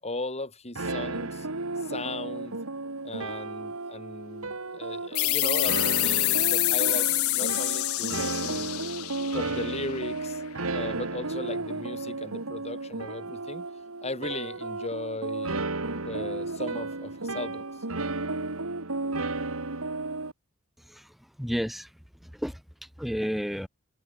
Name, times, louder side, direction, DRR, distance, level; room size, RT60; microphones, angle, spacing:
voice 1, 0.0-1.5 1.8-2.6 3.0-8.7 9.3-10.4 10.7-13.7 14.0-15.6 16.0-17.7, left 2 dB, 30° left, 7.1 m, -37 dB
sound 1, 0.7-20.3, right 3 dB, 85° right, 2.4 m, -33 dB
sound 2, 5.1-10.4, left 20 dB, 85° left, 0.6 m, -27 dB
voice 2, 20.8-23.7, equal, ahead, 4.8 m, -33 dB
head